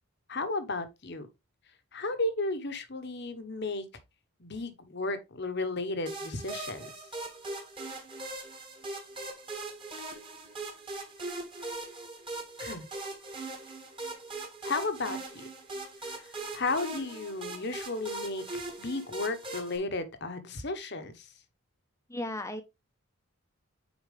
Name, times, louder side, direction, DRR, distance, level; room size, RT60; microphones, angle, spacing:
voice 1, 0.3-1.3 1.9-3.8 4.4-6.9 12.6-12.9 14.6-15.5 16.1-21.3, left 2 dB, 50° left, 1.1 m, -34 dB
sound 1, 6.1-19.8, right 2 dB, 25° right, 1.8 m, -40 dB
voice 2, 22.1-22.6, left 1 dB, 15° left, 0.9 m, -35 dB
9.1 x 4.4 x 3.3 m
head